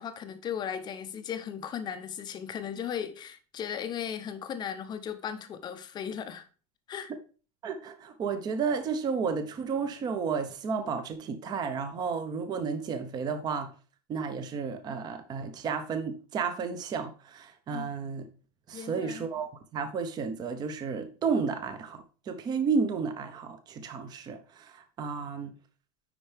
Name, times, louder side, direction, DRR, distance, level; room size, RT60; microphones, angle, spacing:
voice 1, 0.0-6.5 6.9-7.1 17.7-17.9 18.7-19.3, left 8 dB, 20° left, 0.6 m, -36 dB
voice 2, 7.6-13.7 14.1-18.2 18.7-25.5, right 5 dB, 20° right, 0.7 m, -32 dB
9.9 x 4.5 x 3.3 m
supercardioid pair, 160°, 21 cm